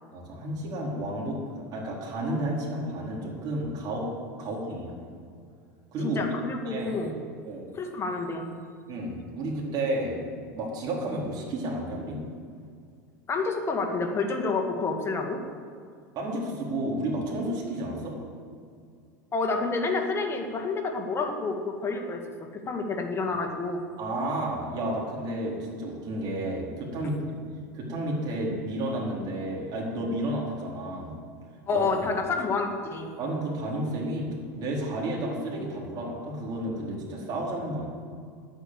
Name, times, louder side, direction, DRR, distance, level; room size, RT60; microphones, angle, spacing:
voice 1, 0.1-4.0 4.4-5.0 5.9-6.2 6.6-6.9 7.4-7.7 8.9-10.2 10.5-12.2 16.2-18.2 24.0-27.2 27.7-31.1 31.7-31.9 33.2-37.9, right 1 dB, 50° right, -3 dB, 4.3 m, -31 dB
voice 2, 6.0-7.2 7.7-8.5 13.3-15.4 19.3-22.2 22.5-23.8 31.7-33.1, left 3 dB, 25° left, 3 dB, 2.1 m, -29 dB
10.5 x 9.2 x 8.2 m, 2.2 s
hypercardioid pair, 100°, 9 cm